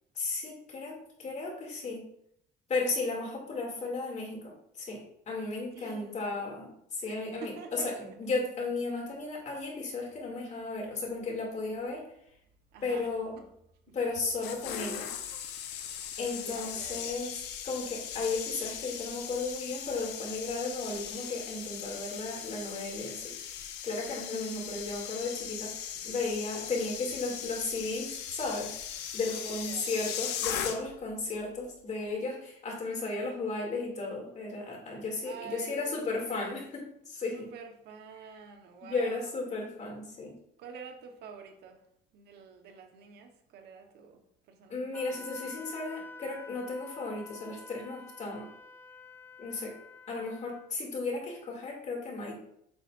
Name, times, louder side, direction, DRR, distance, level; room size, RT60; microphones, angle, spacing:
voice 1, 0.1-2.0 2.7-12.1 12.8-13.3 13.9-15.1 16.2-17.4 17.6-28.7 29.1-37.5 38.8-40.3 44.7-48.5 49.4-49.7 50.1-52.4, left 3 dB, 45° left, 0 dB, 2.7 m, -35 dB
voice 2, 5.7-6.5 7.1-8.2 12.7-13.1 13.4-13.5 16.3-17.3 26.0-26.1 29.4-29.9 35.2-36.7 37.3-39.3 40.6-41.8 42.1-44.2 44.5-45.2, right 6 dB, 75° right, 4 dB, 1.3 m, -47 dB
sound 1, 14.2-31.1 31.4-31.7, left 9 dB, 85° left, 0.9 m, -39 dB
Wind instrument woodwind instrument, 44.9-50.7, left 3 dB, 10° left, 0.6 m, -49 dB
8.5 x 6.6 x 2.6 m, 0.72 s
cardioid pair, 110°, 17 cm